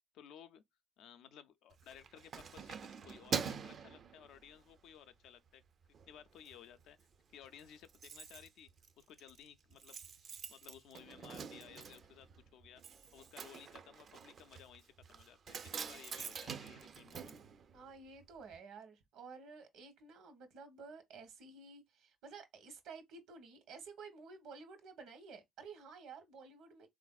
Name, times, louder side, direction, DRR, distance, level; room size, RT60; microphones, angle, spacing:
voice 1, 0.1-0.6 1.0-5.6 6.1-7.0 7.3-8.7 9.0-17.3, left 9 dB, 75° left, 0.4 m, -57 dB
Keys jangling, 1.7-4.8 5.3-5.5 5.8-6.5 6.8-6.9 7.1-7.2 7.4-18.3 18.5-18.6, right 6 dB, 55° right, 0.4 m, -45 dB
voice 2, 15.7-16.0 17.7-26.9, right 4 dB, 80° right, 0.9 m, -53 dB
3.4 x 2.4 x 2.3 m
supercardioid pair, 70°, 0 cm